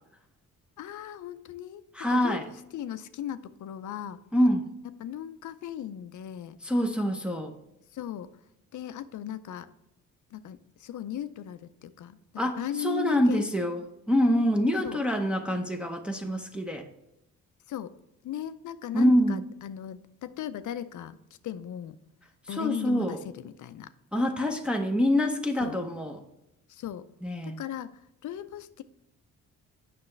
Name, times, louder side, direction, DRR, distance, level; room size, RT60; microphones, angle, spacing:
voice 1, 0.8-2.4 2.7-4.2 5.0-6.6 7.9-8.3 8.7-9.7 10.3-12.2 12.6-13.4 14.8-15.0 16.1-16.3 17.7-17.9 18.2-21.2 21.4-22.0 22.5-23.9 25.6-25.8 26.7-27.1 27.4-28.8, left 11 dB, 60° left, 13 dB, 0.6 m, -37 dB
voice 2, 1.9-2.4 4.3-4.7 6.6-7.5 12.4-13.8 14.1-16.9 18.9-19.4 22.5-23.2 24.1-26.2 27.2-27.6, equal, 5° right, 2 dB, 0.7 m, -25 dB
8.3 x 5.8 x 3.2 m, 0.86 s
cardioid pair, 80°, 34 cm